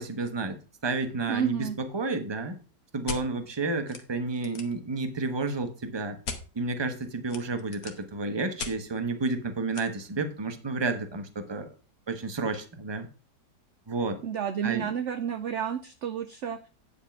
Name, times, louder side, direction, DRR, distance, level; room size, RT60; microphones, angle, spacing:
voice 1, 0.0-2.6 2.9-6.2 6.5-11.7 12.1-13.1 13.9-14.2 14.6-14.9, right 3 dB, 20° right, 7 dB, 0.9 m, -31 dB
voice 2, 1.3-1.8 14.2-16.7, right 8 dB, 65° right, 9 dB, 0.7 m, -31 dB
sound 1, 3.1-3.2 3.9-4.0 4.3-4.8 6.2-6.4 7.3-8.0 8.6-8.7 9.7-9.8, left 4 dB, 60° left, 1.6 m, -36 dB
9.6 x 5.0 x 5.9 m, 0.35 s
omnidirectional pair, 1.9 m